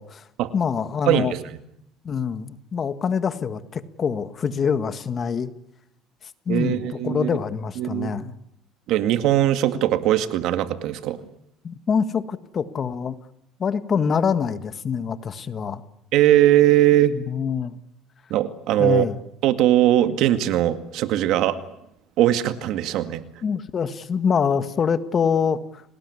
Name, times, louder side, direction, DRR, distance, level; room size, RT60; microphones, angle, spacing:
voice 1, 0.5-1.3 2.0-5.5 6.5-8.3 11.6-13.2 13.6-15.8 17.1-17.8 18.8-19.2 23.4-25.8, left 6 dB, 35° left, 11 dB, 1.6 m, -25 dB
voice 2, 1.1-1.4 6.5-7.3 7.8-8.1 8.9-11.2 16.1-17.2 18.3-19.1 19.4-21.6 22.2-23.2, right 13 dB, 65° right, 10 dB, 2.1 m, -20 dB
29.5 x 19.5 x 9.8 m, 0.81 s
cardioid pair, 125°, 0 cm